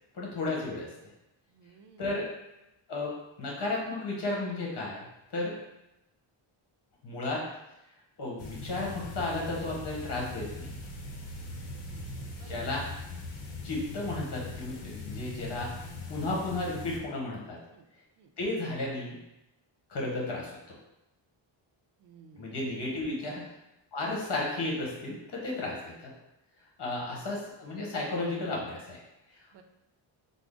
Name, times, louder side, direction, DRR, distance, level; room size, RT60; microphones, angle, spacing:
voice 1, 0.1-0.9 2.0-2.3 2.9-5.0 5.3-5.6 7.0-7.4 8.2-10.7 12.5-12.8 13.6-15.8 16.1-17.6 18.4-19.2 19.9-20.8 22.3-23.5 23.9-26.1 26.8-29.0, left 2 dB, 55° left, -2 dB, 1.1 m, -33 dB
voice 2, 1.5-2.3 11.6-12.1 12.4-12.8 17.7-17.8 18.2-18.3 22.0-22.5 23.2-23.4 29.5-29.6, right 6 dB, 55° right, 6 dB, 0.5 m, -54 dB
sound 1, 8.4-17.0, left 3 dB, 75° left, 0.7 m, -41 dB
3.5 x 2.0 x 3.6 m, 0.91 s
cardioid pair, 115°, 50 cm